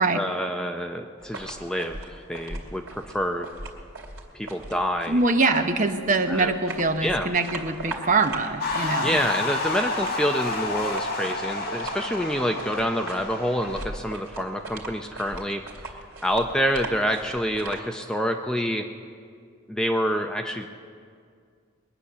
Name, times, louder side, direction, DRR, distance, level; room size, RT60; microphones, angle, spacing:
voice 1, 0.0-3.5 4.3-5.2 6.3-6.5 7.0-7.3 9.0-15.6 16.2-18.9 19.7-20.7, equal, 5° left, 4 dB, 0.5 m, -27 dB
sound 1, 1.2-17.8, right 2 dB, 80° right, 2.5 m, -40 dB
voice 2, 5.1-9.2, right 3 dB, 40° right, 6 dB, 0.8 m, -23 dB
sound 2, 8.6-13.8, left 3 dB, 50° left, 1.8 m, -30 dB
21.5 x 9.8 x 6.7 m, 2.2 s
head